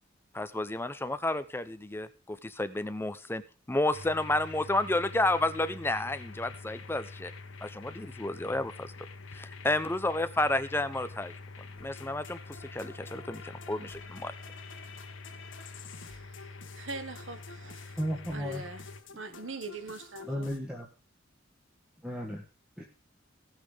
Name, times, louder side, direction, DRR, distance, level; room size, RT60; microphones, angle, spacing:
voice 1, 0.3-3.4 3.7-7.3 7.6-8.9 9.3-11.3 11.8-14.3, left 2 dB, 10° left, 0.8 m, -31 dB
sound 1, 3.9-19.0, left 3 dB, 85° left, 1.3 m, -46 dB
sound 2, 11.8-20.6, left 4 dB, 70° left, 1.6 m, -51 dB
voice 2, 15.9-18.0 18.3-18.8 19.1-20.5, right 2 dB, 75° right, 1.5 m, -42 dB
voice 3, 18.0-18.6 20.2-20.9 22.0-22.4 22.8-22.9, equal, 5° right, 1.5 m, -34 dB
16.5 x 6.2 x 5.0 m
head